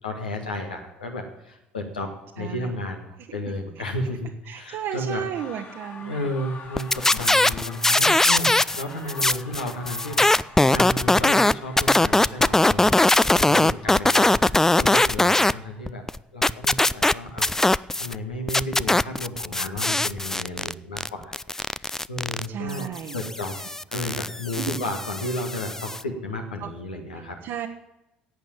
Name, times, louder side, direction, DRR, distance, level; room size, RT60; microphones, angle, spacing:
voice 1, 0.0-3.0 3.3-5.2 6.0-10.3 10.7-16.0 16.3-17.5 17.9-23.6 23.9-27.4, left 1 dB, 85° left, 3 dB, 1.7 m, -33 dB
voice 2, 2.4-2.8 4.5-6.2 22.5-23.2 24.5-24.8 26.6-26.7 27.4-27.7, right 9 dB, 55° right, 2 dB, 1.0 m, -33 dB
sound 1, 5.3-16.1, left 3 dB, 45° left, 3.5 m, -45 dB
sound 2, 6.8-8.8 9.1-15.5 15.9-18.1 18.5-26.0, left 2 dB, 10° left, 0.4 m, -21 dB
11.5 x 8.3 x 9.0 m, 0.90 s
figure-of-eight pair, 60°, 5 cm